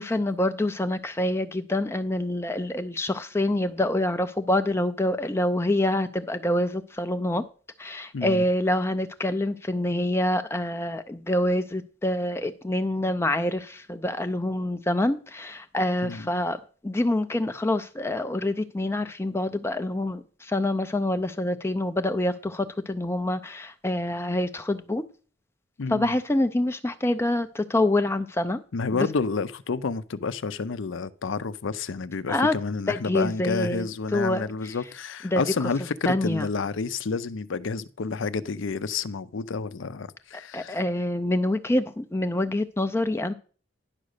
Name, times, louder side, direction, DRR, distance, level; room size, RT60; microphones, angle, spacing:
voice 1, 0.0-7.4 7.8-16.6 16.8-25.0 25.9-28.6 28.9-29.1 32.3-32.5 32.9-33.9 34.1-34.8 35.2-35.4 36.1-36.5 40.5-43.3, left 1 dB, 15° left, 0.4 m, -26 dB
voice 2, 8.1-8.5 16.0-16.3 25.8-26.1 28.7-40.8, left 4 dB, 75° left, 0.6 m, -30 dB
10.5 x 5.1 x 6.5 m
head